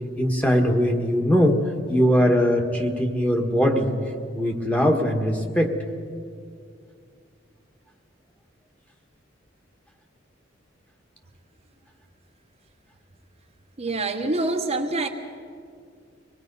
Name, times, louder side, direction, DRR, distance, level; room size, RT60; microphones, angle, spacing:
voice 1, 0.2-1.6 1.9-3.9 4.3-5.7, equal, 5° left, 3 dB, 1.5 m, -21 dB
voice 2, 13.8-15.1, right 2 dB, 35° right, 3 dB, 1.1 m, -25 dB
24.5 x 19.5 x 5.4 m, 2.3 s
head